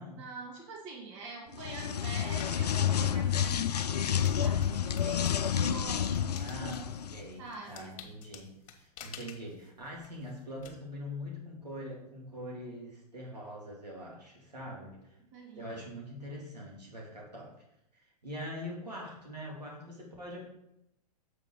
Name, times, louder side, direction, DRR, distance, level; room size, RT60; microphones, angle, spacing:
voice 1, 0.2-6.6 7.4-8.0 15.3-15.8, right 3 dB, 50° right, -1 dB, 2.2 m, -45 dB
sound 1, 1.5-7.2, left 8 dB, 80° left, 0.4 m, -30 dB
sound 2, 2.4-2.7 3.3-10.7, left 8 dB, 55° left, 1.3 m, -51 dB
voice 2, 6.4-15.1 15.5-17.5 17.9-20.5, equal, 90° right, -3 dB, 2.5 m, -43 dB
7.8 x 5.2 x 4.6 m, 0.81 s
figure-of-eight pair, 105°, 20 cm